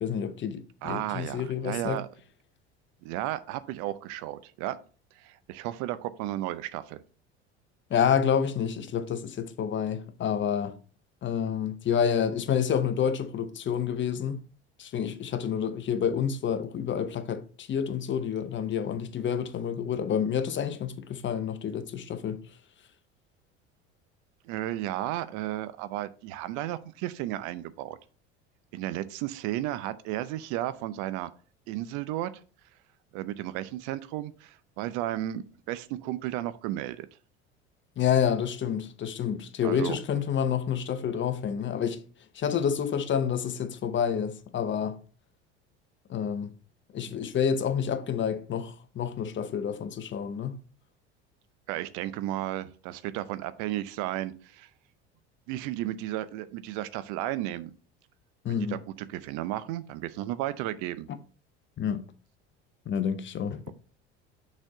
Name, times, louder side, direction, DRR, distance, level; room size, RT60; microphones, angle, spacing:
voice 1, 0.0-2.0 7.9-10.8 11.2-14.4 14.8-22.4 38.0-42.0 42.3-45.0 46.1-46.5 46.9-50.6 58.4-58.8 61.8-62.0 62.9-63.6, left 8 dB, 35° left, 0.8 m, -28 dB
voice 2, 0.8-2.1 3.0-4.8 5.2-7.0 24.4-28.0 28.7-31.3 31.7-32.3 33.1-37.1 39.6-40.0 47.0-47.2 51.7-54.7 55.5-57.7 58.5-61.1, right 14 dB, 60° right, 0.6 m, -33 dB
6.2 x 4.2 x 4.9 m
hypercardioid pair, 70°, 34 cm